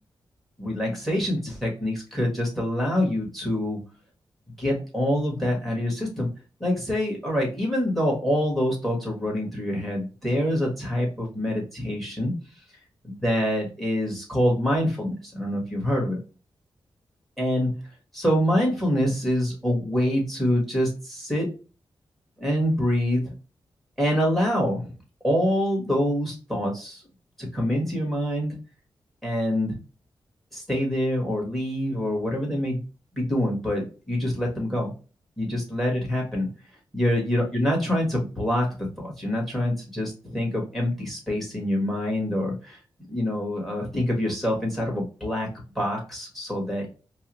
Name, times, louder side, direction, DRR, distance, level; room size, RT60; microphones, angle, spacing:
voice 1, 0.6-3.8 4.5-6.3 6.6-12.3 13.0-16.2 17.4-17.7 18.1-21.5 22.4-23.3 24.0-24.9 25.2-27.0 27.4-28.6 29.2-29.8 30.5-32.8 33.1-34.9 35.4-36.5 36.9-40.1 40.3-42.8 43.1-45.5 45.7-46.9, equal, ahead, 0 dB, 1.5 m, -25 dB
4.5 x 2.0 x 2.9 m, 0.34 s
wide cardioid pair, 130°, 9 cm